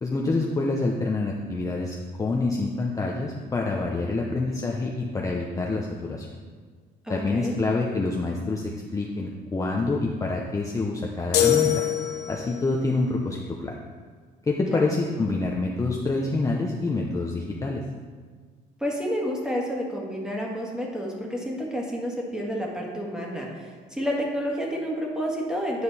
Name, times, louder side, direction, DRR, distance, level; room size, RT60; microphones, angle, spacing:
voice 1, 0.0-6.3 7.1-8.6 8.9-11.7 12.3-13.8 14.5-17.8, left 3 dB, 20° left, -1 dB, 0.7 m, -27 dB
voice 2, 7.0-7.5 14.7-14.9 18.8-25.8, equal, 5° right, -1 dB, 1.7 m, -30 dB
sound 1, 11.3-12.7, left 11 dB, 75° left, 0.9 m, -23 dB
9.5 x 5.0 x 4.2 m, 1.6 s
cardioid pair, 110°, 17 cm